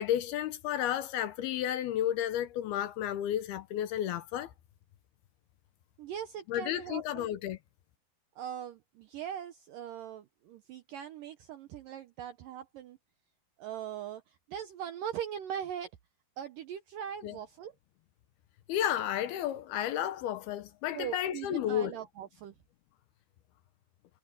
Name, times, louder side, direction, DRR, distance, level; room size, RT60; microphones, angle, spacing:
voice 1, 0.0-4.5 6.5-7.6 17.2-17.4 18.7-21.9, left 11 dB, 75° left, 2.6 m, -32 dB
voice 2, 6.0-7.3 8.4-13.0 13.6-15.9 16.4-17.7 20.9-22.5, right 9 dB, 75° right, 2.0 m, -40 dB
omnidirectional pair, 5.0 m